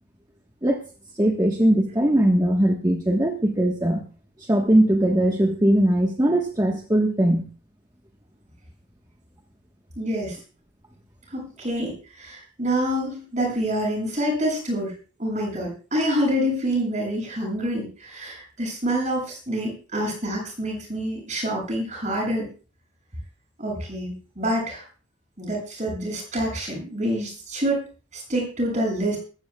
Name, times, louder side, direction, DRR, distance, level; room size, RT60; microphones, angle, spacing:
voice 1, 1.1-4.0 4.4-7.4, right 1 dB, 20° right, 2 dB, 1.4 m, -20 dB
voice 2, 10.0-10.4 11.3-14.9 15.2-22.5 23.6-24.8 25.4-27.8 28.1-29.2, equal, 40° right, 0 dB, 7.5 m, -27 dB
21.0 x 14.5 x 2.4 m, 0.37 s
head